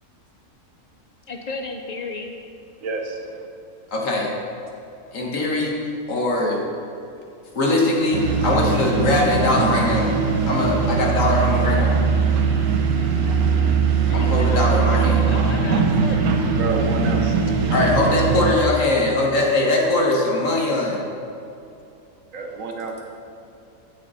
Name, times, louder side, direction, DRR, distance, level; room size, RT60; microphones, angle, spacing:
voice 1, 1.3-2.3 14.0-16.3 17.6-17.7, left 3 dB, 80° left, 4 dB, 0.3 m, -33 dB
voice 2, 2.8-3.3 16.5-17.3 22.3-23.2, right 3 dB, 65° right, 2 dB, 1.4 m, -29 dB
voice 3, 3.9-4.3 5.1-5.7 6.1-6.6 7.5-10.1 10.4-12.0 14.1-15.2 17.7-21.0, left 2 dB, 65° left, -2 dB, 1.9 m, -21 dB
sound 1, 8.1-18.5, right 5 dB, 90° right, 1.4 m, -20 dB
14.5 x 6.3 x 4.2 m, 2.7 s
omnidirectional pair, 1.5 m